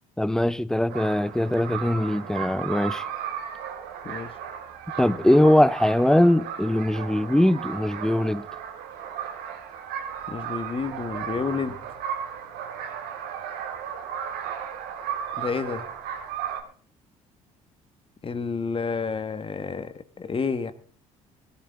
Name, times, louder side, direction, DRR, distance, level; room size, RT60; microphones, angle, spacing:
voice 1, 0.2-3.1 5.0-8.5, left 1 dB, 5° left, 0.6 m, -21 dB
sound 1, 0.9-16.6, right 8 dB, 70° right, 2.1 m, -35 dB
voice 2, 10.3-11.8 15.4-15.9 18.2-20.7, left 5 dB, 30° left, 1.5 m, -30 dB
17.5 x 13.0 x 3.5 m
hypercardioid pair, 60°, 17 cm